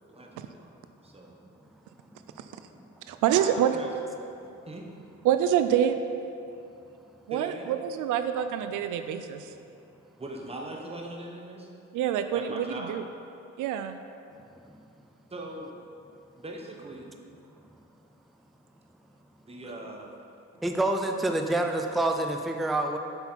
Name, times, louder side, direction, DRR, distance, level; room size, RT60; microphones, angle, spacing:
voice 1, 0.1-0.7 1.0-1.3 3.4-3.9 4.7-4.9 7.3-7.7 10.2-11.7 12.3-13.0 15.3-15.7 16.3-17.1 19.4-20.1, right 1 dB, 20° right, 0 dB, 1.1 m, -40 dB
voice 2, 3.1-3.7 5.2-6.0 7.3-9.5 11.9-13.0 13.6-14.0, right 10 dB, 85° right, 9 dB, 0.5 m, -26 dB
voice 3, 20.6-23.0, right 2 dB, ahead, 4 dB, 0.4 m, -27 dB
7.8 x 5.7 x 4.5 m, 2.7 s
cardioid pair, 90°, 30 cm